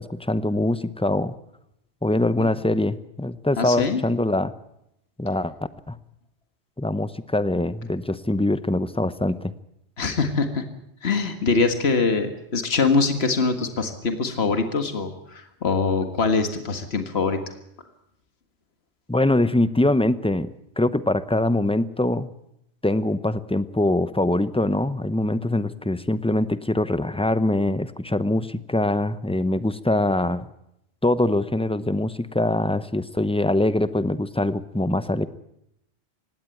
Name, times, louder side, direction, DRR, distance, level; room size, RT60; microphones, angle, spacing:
voice 1, 0.0-1.3 2.0-4.5 5.2-5.5 5.9-6.0 6.8-9.5 19.1-20.5 20.8-22.3 22.8-30.5 31.0-35.3, left 1 dB, 5° left, 13 dB, 0.7 m, -23 dB
voice 2, 3.6-4.0 10.0-10.6 11.0-17.4, left 4 dB, 70° left, 7 dB, 2.0 m, -23 dB
19.5 x 16.5 x 9.1 m, 0.79 s
omnidirectional pair, 1.1 m